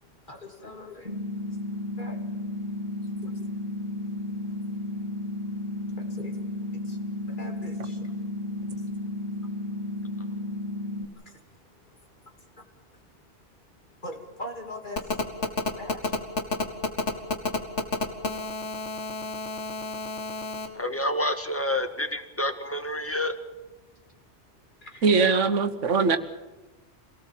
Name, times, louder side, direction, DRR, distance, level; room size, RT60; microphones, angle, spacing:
voice 1, 0.0-2.2 2.6-3.5 3.8-5.3 5.7-12.7 12.9-13.0 14.0-16.2 17.2-17.3 24.0-24.1 24.8-25.1, left 1 dB, 40° left, 2 dB, 3.1 m, -46 dB
sound 1, 1.0-11.0, left 1 dB, 25° right, 3.0 m, -33 dB
Telephone, 15.0-20.7, left 3 dB, 75° left, 2.3 m, -29 dB
voice 2, 20.7-23.3, left 1 dB, 10° left, 7 dB, 1.6 m, -28 dB
voice 3, 25.0-26.2, right 4 dB, 85° right, 9 dB, 1.5 m, -21 dB
26.5 x 18.0 x 7.5 m, 1.1 s
omnidirectional pair, 1.2 m